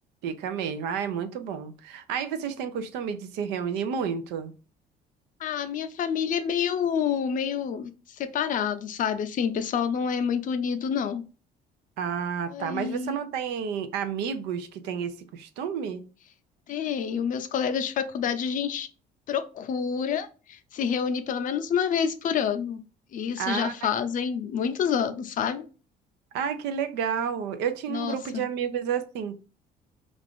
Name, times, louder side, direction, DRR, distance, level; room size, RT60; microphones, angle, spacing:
voice 1, 0.2-4.5 12.0-16.0 23.4-23.9 26.3-29.3, right 7 dB, 90° right, 0.5 m, -30 dB
voice 2, 5.4-11.2 12.5-13.2 16.7-18.9 19.3-22.8 23.1-25.7 27.9-28.4, left 7 dB, 50° left, 0.5 m, -28 dB
2.5 x 2.4 x 3.5 m
cardioid pair, 110°, 17 cm